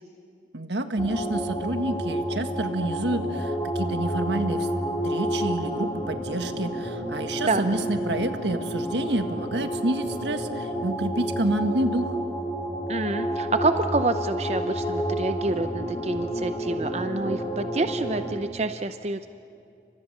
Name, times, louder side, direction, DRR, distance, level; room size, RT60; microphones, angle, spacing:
voice 1, 0.5-4.7 5.0-12.2, right 1 dB, 80° right, 7 dB, 1.6 m, -28 dB
sound 1, 1.0-18.3, equal, 25° left, 4.2 m, -30 dB
voice 2, 12.9-19.3, right 2 dB, 35° right, 9 dB, 0.6 m, -27 dB
29.5 x 25.5 x 6.8 m, 2.4 s
head